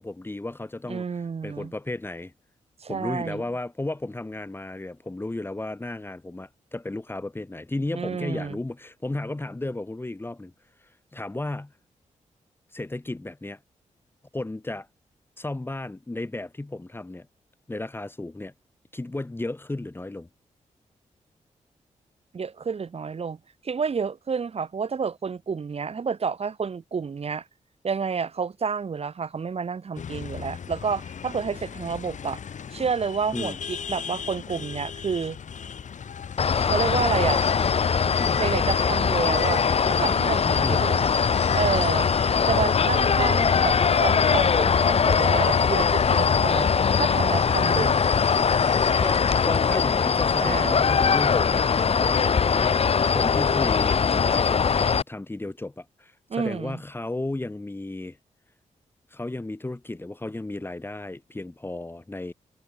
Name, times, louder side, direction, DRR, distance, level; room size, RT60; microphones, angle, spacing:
voice 1, 0.0-1.0 1.4-2.3 2.9-10.5 11.1-11.7 12.7-13.6 14.3-14.9 15.4-17.3 17.7-18.5 18.9-20.3 33.3-33.6 38.2-38.4 40.6-40.8 49.0-58.2 59.1-62.3, left 2 dB, 15° left, 1.7 m, -34 dB
voice 2, 0.9-1.7 2.8-3.4 7.9-8.6 22.3-27.5 27.8-32.4 32.7-35.4 36.7-37.4 38.4-41.1 41.5-42.1 42.5-48.0 50.4-50.8 56.3-56.8, right 5 dB, 50° right, 2.7 m, -29 dB
sound 1, 30.0-49.8, left 7 dB, 70° left, 6.4 m, -36 dB
sound 2, 36.4-55.0, left 6 dB, 50° left, 1.1 m, -21 dB
cardioid pair, 95°, 13 cm